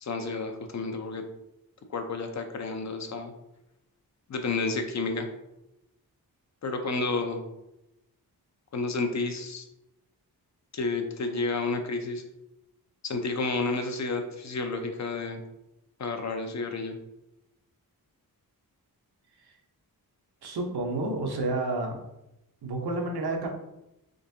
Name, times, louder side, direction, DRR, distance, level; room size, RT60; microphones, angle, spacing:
voice 1, 0.0-1.2 1.9-3.3 4.3-5.3 6.6-7.4 8.7-9.7 10.7-12.2 13.0-15.4 16.0-17.0, left 3 dB, 50° left, 6 dB, 0.5 m, -30 dB
voice 2, 20.4-22.0 22.6-23.5, right 2 dB, 85° right, 2 dB, 0.8 m, -30 dB
3.8 x 3.5 x 2.7 m, 0.89 s
wide cardioid pair, 130°, 38 cm